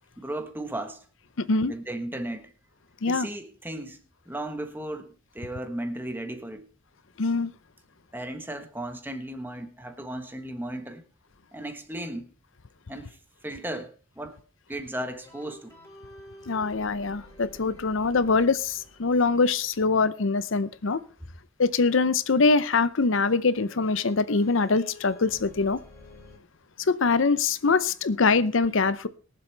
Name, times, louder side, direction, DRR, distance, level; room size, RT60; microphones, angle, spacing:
voice 1, 0.2-1.0 1.5-2.5 3.0-4.0 4.3-6.7 8.1-11.0 11.5-12.3 12.9-14.4 14.7-15.8, right 1 dB, 10° right, 1.2 m, -35 dB
voice 2, 1.4-1.7 3.0-3.3 7.2-7.5 16.5-21.0 21.6-25.8 26.9-29.1, left 4 dB, 65° left, 0.7 m, -23 dB
sound 1, 15.2-20.9 23.6-26.4, left 1 dB, 15° left, 4.3 m, -50 dB
22.5 x 7.6 x 3.4 m
head